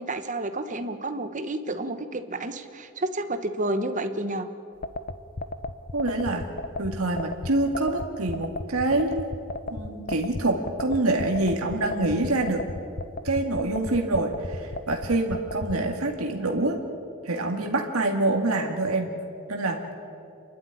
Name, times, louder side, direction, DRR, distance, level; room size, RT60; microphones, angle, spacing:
voice 1, 0.0-4.5, right 2 dB, 35° right, 9 dB, 1.2 m, -30 dB
sound 1, 4.8-15.8, left 2 dB, 45° left, 0.9 m, -33 dB
voice 2, 5.9-6.5 6.8-9.3 9.7-12.6 13.2-16.8 17.2-19.1 19.5-19.8, right 2 dB, 85° right, 2 dB, 2.1 m, -26 dB
27.5 x 12.0 x 9.9 m, 2.5 s
head